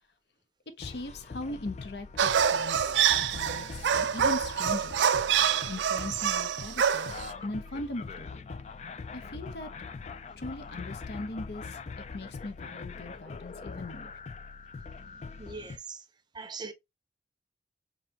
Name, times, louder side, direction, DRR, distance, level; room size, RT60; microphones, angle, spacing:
voice 1, 0.8-5.1 5.7-7.1 7.4-8.5 9.1-9.7 10.4-11.8 12.1-14.2, left 2 dB, 65° left, 0.8 m, -39 dB
sound 1, 0.8-15.8, left 4 dB, 40° left, 0.4 m, -43 dB
sound 2, 2.2-7.3, right 8 dB, 85° right, 0.4 m, -26 dB
voice 2, 15.4-16.1 16.3-16.7, right 4 dB, 25° right, 0.6 m, -42 dB
4.0 x 3.7 x 2.8 m
head